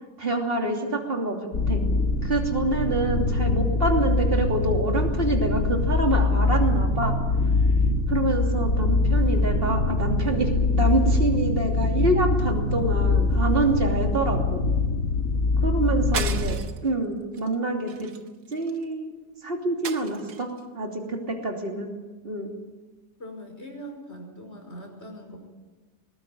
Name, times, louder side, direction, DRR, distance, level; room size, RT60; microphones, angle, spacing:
voice 1, 0.2-1.4 1.7-1.9 2.2-7.1 8.1-14.6 15.6-18.1 18.5-19.1 19.4-20.5 20.7-21.9 22.2-22.5, right 2 dB, 35° right, 2 dB, 3.1 m, -26 dB
sound 1, 1.5-16.6, left 3 dB, 60° left, 2.2 m, -23 dB
sound 2, 16.1-16.9 17.3-17.5 17.9-18.8 19.8-20.6, right 7 dB, 85° right, 1.8 m, -34 dB
voice 2, 23.2-25.4, equal, 40° left, 3 dB, 5.6 m, -41 dB
20.5 x 20.0 x 9.1 m, 1.3 s
omnidirectional pair, 1.7 m